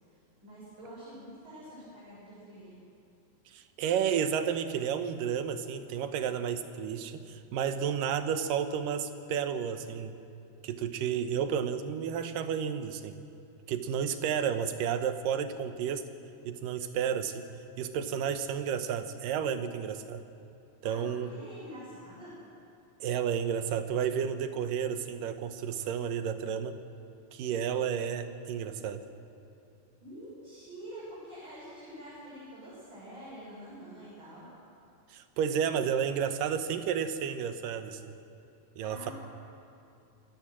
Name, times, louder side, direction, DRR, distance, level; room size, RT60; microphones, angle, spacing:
voice 1, 0.1-2.8 20.8-22.3 30.0-34.5 38.8-39.1, right 1 dB, 35° right, -9 dB, 7.1 m, -47 dB
voice 2, 3.5-10.1 10.6-13.2 13.7-16.1 16.5-17.4 17.8-20.2 20.8-21.3 23.0-26.8 27.3-29.0 35.1-38.0 38.8-39.1, right 8 dB, 80° right, 9 dB, 2.7 m, -31 dB
25.5 x 14.5 x 7.6 m, 2.8 s
omnidirectional pair, 3.8 m